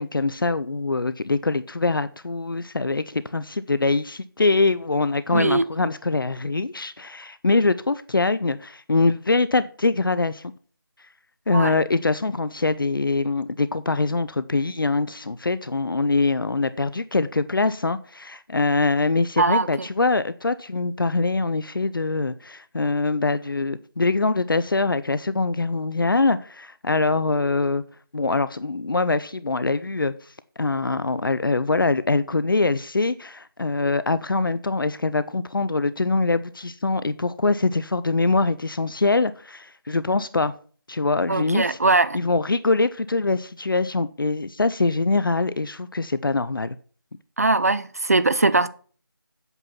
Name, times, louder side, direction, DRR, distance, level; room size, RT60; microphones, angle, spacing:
voice 1, 0.0-10.5 11.5-27.8 28.1-30.1 30.6-40.5 40.9-41.8 42.1-46.8, left 3 dB, 65° left, 0.6 m, -23 dB
voice 2, 5.3-5.6 11.5-11.7 19.4-19.9 41.3-42.2 47.4-48.7, right 3 dB, 40° right, 0.5 m, -21 dB
8.1 x 7.4 x 5.6 m
figure-of-eight pair, 165°, 12 cm